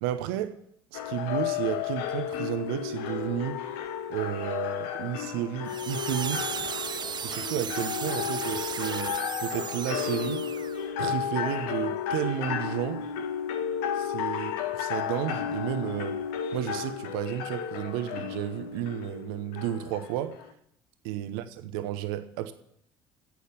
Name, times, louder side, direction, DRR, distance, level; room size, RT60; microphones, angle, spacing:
voice 1, 0.0-0.6 0.9-3.6 4.1-6.5 7.2-10.5 11.0-13.0 14.0-14.5 14.8-16.2 16.5-20.4 21.0-22.5, right 12 dB, 70° right, 0.9 m, -32 dB
sound 1, 0.9-20.5, left 8 dB, 70° left, 1.0 m, -33 dB
sound 2, 5.7-10.9, right 7 dB, 35° right, 0.6 m, -36 dB
10.5 x 8.4 x 8.5 m
hypercardioid pair, 60°, 13 cm